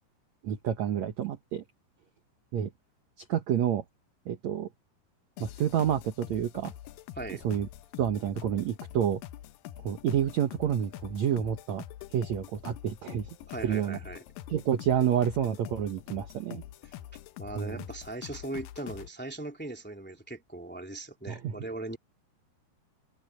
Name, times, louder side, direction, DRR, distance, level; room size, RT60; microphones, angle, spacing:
voice 1, 0.4-1.6 2.5-2.7 3.3-3.8 4.3-4.7 5.4-6.7 7.4-7.7 8.0-9.2 9.8-11.8 12.1-13.3 13.6-14.0 14.5-16.6 17.5-17.8 21.3-21.5, right 9 dB, 75° right, 1.6 m, -29 dB
sound 1, 5.4-19.1, left 13 dB, 80° left, 2.0 m, -45 dB
voice 2, 13.5-14.2 16.8-16.9 17.4-22.0, right 2 dB, 5° left, 1.9 m, -39 dB
open air
omnidirectional pair, 5.1 m